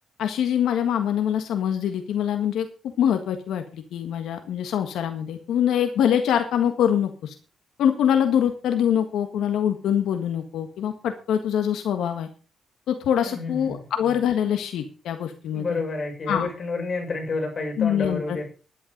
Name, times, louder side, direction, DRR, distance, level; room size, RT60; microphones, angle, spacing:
voice 1, 0.2-7.3 7.8-12.3 12.9-15.8 16.3-16.5 17.8-18.4, left 9 dB, 85° left, 6 dB, 1.6 m, -24 dB
voice 2, 13.2-13.7 15.5-18.5, left 3 dB, 35° left, 2 dB, 6.6 m, -29 dB
11.5 x 11.0 x 5.3 m, 0.35 s
cardioid pair, 130°, 0 cm